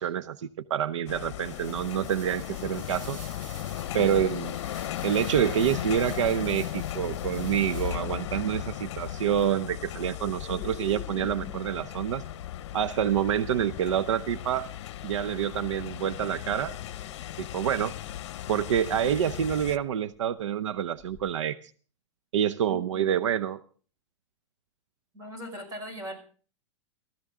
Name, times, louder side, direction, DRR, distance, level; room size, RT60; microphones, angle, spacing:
voice 1, 0.0-3.2 3.9-4.5 5.0-12.2 12.7-14.7 15.0-16.7 17.4-17.9 18.5-21.7 22.3-23.6, right 9 dB, 80° right, 13 dB, 0.7 m, -27 dB
sound 1, 1.1-19.8, left 12 dB, 65° left, 0.8 m, -36 dB
sound 2, 1.4-8.2, right 2 dB, 45° right, 7.7 m, -49 dB
voice 2, 3.9-4.3 22.7-23.3 25.1-26.2, equal, 20° right, 6 dB, 5.4 m, -40 dB
sound 3, 10.1-21.4, left 7 dB, 20° left, 7.7 m, -49 dB
18.0 x 14.5 x 3.7 m, 0.41 s
hypercardioid pair, 135°, 16 cm